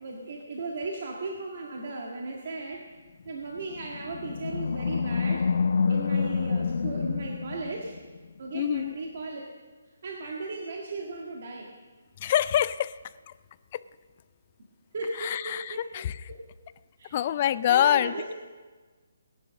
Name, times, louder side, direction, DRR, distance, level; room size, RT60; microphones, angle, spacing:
voice 1, 0.0-2.8 3.2-5.5 5.9-8.0 8.4-9.4 9.9-11.7 14.9-16.0 16.3-16.4 17.0-17.2 17.7-18.3, right 3 dB, 45° right, -1 dB, 1.7 m, -36 dB
Animal, 3.6-8.2, left 5 dB, 50° left, 0.7 m, -28 dB
voice 2, 8.5-8.9 12.2-13.0 13.3-13.4 13.7-13.8 15.2-16.2 17.1-18.1, left 11 dB, 25° left, 16 dB, 0.4 m, -25 dB
19.0 x 10.5 x 6.4 m, 1.4 s
hypercardioid pair, 175°, 0 cm